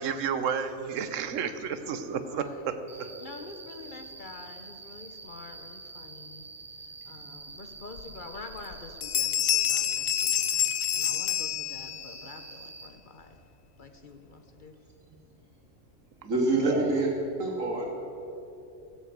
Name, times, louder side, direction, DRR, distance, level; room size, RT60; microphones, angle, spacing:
voice 1, 0.0-3.1 16.6-16.9, right 7 dB, 75° right, 10 dB, 1.2 m, -31 dB
voice 2, 1.8-2.8 3.2-6.5 7.0-13.4 13.8-14.7, left 3 dB, 45° left, 7 dB, 0.9 m, -47 dB
Cricket, 2.9-12.9, right 3 dB, 30° right, 0.8 m, -46 dB
sound 1, 8.0-8.1 8.5-8.7 9.0-12.2, left 11 dB, 85° left, 1.1 m, -27 dB
voice 3, 16.2-17.1 17.4-17.9, right 2 dB, 90° right, -2 dB, 2.9 m, -27 dB
15.5 x 8.3 x 8.0 m, 3.0 s
omnidirectional pair, 1.3 m